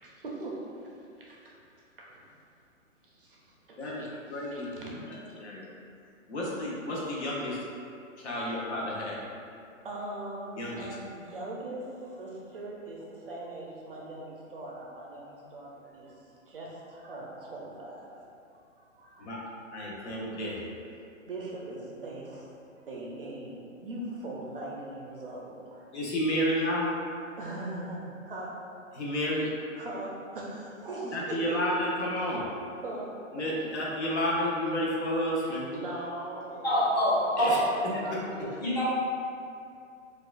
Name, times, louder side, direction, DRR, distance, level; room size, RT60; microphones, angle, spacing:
voice 1, 0.0-0.6 1.2-1.5 2.0-2.2 3.0-4.1 4.5-4.9 9.8-16.2 16.5-18.0 19.0-19.3 21.3-22.5 22.9-25.9 27.4-28.5 29.8-31.6 32.8-33.1 35.7-36.6 37.4-38.5, right 2 dB, 45° right, -3 dB, 0.5 m, -40 dB
voice 2, 3.8-5.7 6.3-7.6 8.2-9.2 10.6-11.0 19.2-19.4 19.7-20.7 25.9-26.9 28.9-29.5 31.1-32.5 33.3-35.7 37.4-37.6, equal, 60° left, -5 dB, 0.8 m, -31 dB
voice 3, 36.6-37.6 38.6-38.8, equal, 35° left, -10 dB, 1.2 m, -25 dB
4.3 x 2.4 x 2.4 m, 2.5 s
hypercardioid pair, 165°, 39 cm